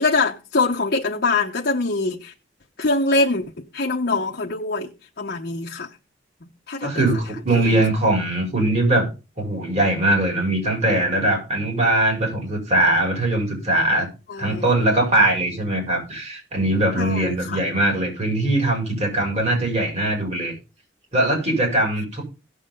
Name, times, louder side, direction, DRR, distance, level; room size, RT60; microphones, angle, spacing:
voice 1, 0.0-2.3 2.8-3.4 3.7-4.9 5.2-5.9 6.4-7.1 7.6-7.9 14.3-14.6 16.9-17.6, left 3 dB, 55° left, 1.0 m, -23 dB
voice 2, 6.8-9.1 9.4-14.1 14.4-20.5 21.1-22.2, right 1 dB, 40° right, 5.9 m, -21 dB
17.0 x 7.4 x 3.7 m
head